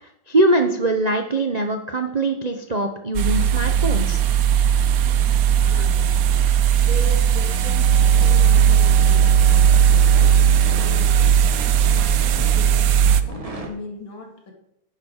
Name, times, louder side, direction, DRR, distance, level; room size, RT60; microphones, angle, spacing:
voice 1, 0.0-4.2, right 1 dB, 50° right, 5 dB, 0.4 m, -22 dB
sound 1, 3.1-13.2, right 8 dB, 70° right, 0.8 m, -17 dB
voice 2, 5.6-9.7 10.1-11.3 11.8-14.5, left 3 dB, 70° left, 2 dB, 3.1 m, -38 dB
sound 2, 7.9-13.7, equal, 20° right, 1.4 m, -35 dB
10.5 x 10.5 x 4.6 m, 0.79 s
omnidirectional pair, 2.2 m